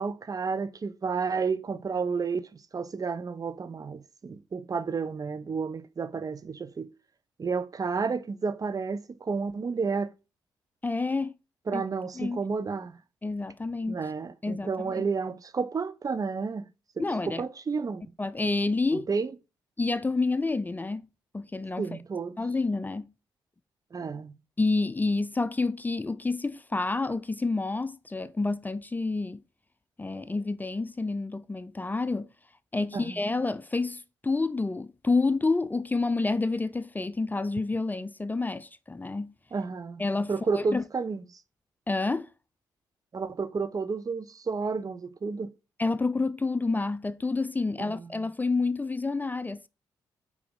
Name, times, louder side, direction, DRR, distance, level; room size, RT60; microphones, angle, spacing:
voice 1, 0.0-6.9 7.4-10.1 11.7-13.0 13.9-16.6 17.3-18.0 19.1-19.3 21.8-22.4 23.9-24.3 30.2-30.3 32.9-33.2 39.5-40.0 40.3-41.2 43.1-45.5 47.8-48.1, right 5 dB, 40° right, 0.7 m, -31 dB
voice 2, 10.8-11.3 11.7-11.8 12.2-12.4 13.2-14.0 14.4-15.0 17.0-17.4 18.2-19.1 19.8-21.1 21.3-21.9 22.4-23.1 24.6-29.4 30.0-32.3 32.7-39.3 40.0-40.8 41.9-42.3 45.8-49.7, left 3 dB, 20° left, 0.5 m, -29 dB
4.9 x 4.9 x 5.2 m
hypercardioid pair, 45°, 9 cm